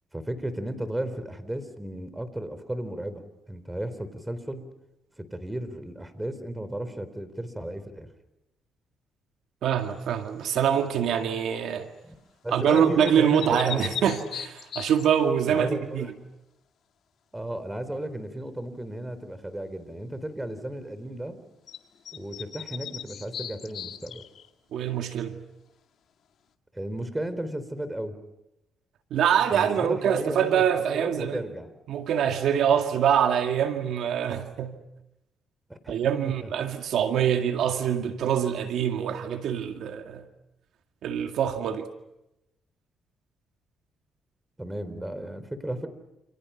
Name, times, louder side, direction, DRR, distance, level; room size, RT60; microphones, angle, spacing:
voice 1, 0.1-4.7 5.2-8.1 12.0-12.2 12.4-14.1 15.5-16.1 17.3-21.4 22.1-24.2 26.7-28.2 29.5-31.7 35.7-36.0 36.2-36.5 44.6-45.9, right 1 dB, 10° right, 3.9 m, -34 dB
voice 2, 9.6-11.9 12.5-16.1 24.7-25.4 29.1-31.4 31.9-34.8 35.9-40.2 41.0-41.9, right 8 dB, 75° right, 2.1 m, -25 dB
sound 1, 10.5-10.9 12.7-15.3 21.7-21.8 22.0-24.5, left 9 dB, 65° left, 2.1 m, -38 dB
29.0 x 29.0 x 5.8 m
cardioid pair, 90°, 0 cm